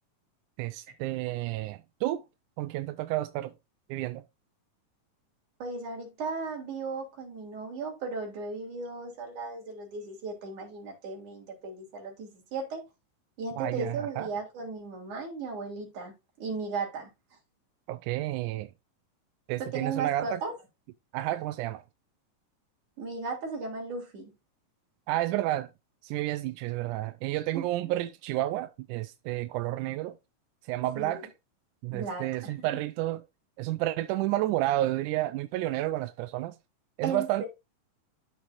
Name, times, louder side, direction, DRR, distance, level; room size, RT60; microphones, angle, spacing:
voice 1, 0.6-2.2 2.6-3.5 3.9-4.2 13.6-14.3 17.9-18.7 19.5-20.4 21.1-21.8 25.1-25.7 26.0-30.2 30.6-31.3 31.8-33.2 33.6-36.6 37.0-37.4, right 15 dB, 80° right, 1.9 m, -31 dB
voice 2, 5.6-12.8 13.4-17.1 19.6-20.5 23.0-24.3 27.5-27.6 31.0-31.3 31.9-32.5 37.0-37.5, right 4 dB, 65° right, 4.4 m, -36 dB
12.5 x 4.9 x 2.6 m
omnidirectional pair, 3.8 m